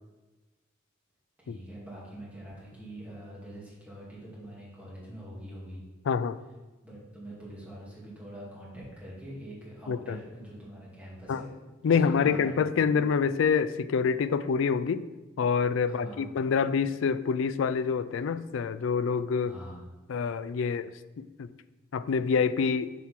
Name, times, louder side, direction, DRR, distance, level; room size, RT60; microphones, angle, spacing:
voice 1, 1.4-5.8 6.8-11.5 11.9-12.9 15.8-16.3 19.5-19.8, right 1 dB, 5° right, -7 dB, 2.3 m, -44 dB
voice 2, 6.1-6.4 9.9-10.2 11.3-11.4 11.8-15.0 15.4-19.6 20.1-20.9 21.2-21.5 21.9-22.9, left 6 dB, 70° left, 14 dB, 0.3 m, -26 dB
5.7 x 4.7 x 5.8 m, 1.2 s
head